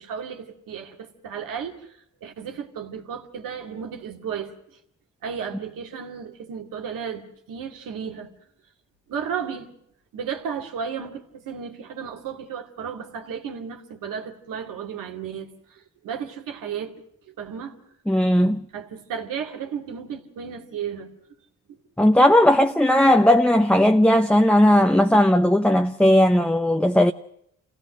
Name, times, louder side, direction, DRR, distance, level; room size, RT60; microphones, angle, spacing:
voice 1, 0.0-1.8 2.2-4.5 5.2-8.3 9.1-9.7 10.1-17.0 17.3-17.7 18.4-21.1, right 7 dB, 80° right, 2.4 m, -34 dB
voice 2, 18.1-18.6 22.0-27.1, left 1 dB, 5° left, 0.8 m, -17 dB
27.0 x 16.5 x 6.5 m
supercardioid pair, 55°, 32 cm